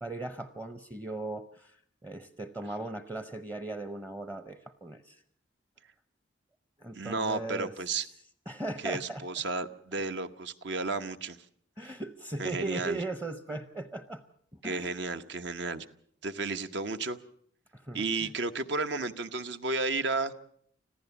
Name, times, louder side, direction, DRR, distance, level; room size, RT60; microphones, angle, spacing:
voice 1, 0.0-5.2 6.8-7.7 8.5-9.2 11.8-14.2 14.5-15.0 17.7-18.3, right 2 dB, 15° right, 10 dB, 0.7 m, -38 dB
voice 2, 6.9-8.1 8.8-11.4 11.8-11.9 12.4-13.0 14.6-15.9 16.2-17.2 17.9-20.3, right 3 dB, 65° right, 9 dB, 1.0 m, -33 dB
26.0 x 15.0 x 7.1 m, 0.66 s
head